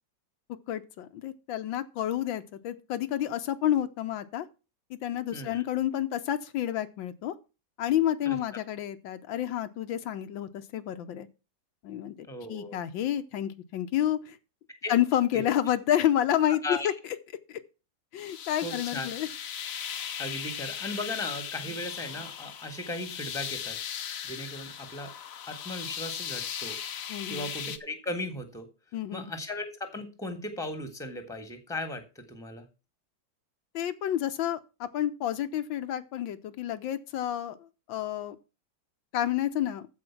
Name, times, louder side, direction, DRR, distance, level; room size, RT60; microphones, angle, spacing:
voice 1, 0.7-4.5 4.9-7.3 7.8-11.3 11.8-14.4 14.9-16.9 17.5-17.6 18.1-19.3 27.1-27.5 28.9-29.3 33.7-38.4 39.1-39.9, left 11 dB, 85° left, 1.6 m, -29 dB
voice 2, 5.3-5.6 8.2-8.4 12.3-12.8 14.8-14.9 15.3-15.5 16.5-16.9 18.6-19.1 20.2-23.8 24.2-25.1 25.5-26.8 27.3-28.7 29.1-32.0 32.3-32.7, left 2 dB, ahead, 1.4 m, -37 dB
sound 1, 18.2-27.8, left 8 dB, 55° left, 1.1 m, -38 dB
14.0 x 4.9 x 5.9 m
omnidirectional pair, 2.0 m